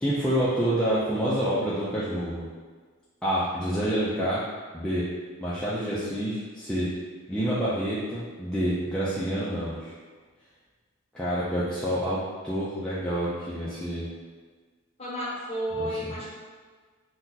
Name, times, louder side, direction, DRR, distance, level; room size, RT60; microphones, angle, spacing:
voice 1, 0.0-2.5 3.2-4.4 4.7-5.1 5.4-6.9 7.3-9.9 11.1-14.1 15.8-16.1, equal, 5° left, -11 dB, 0.4 m, -28 dB
voice 2, 15.0-16.3, equal, 30° left, -8 dB, 1.1 m, -32 dB
2.8 x 2.2 x 3.8 m, 1.5 s
head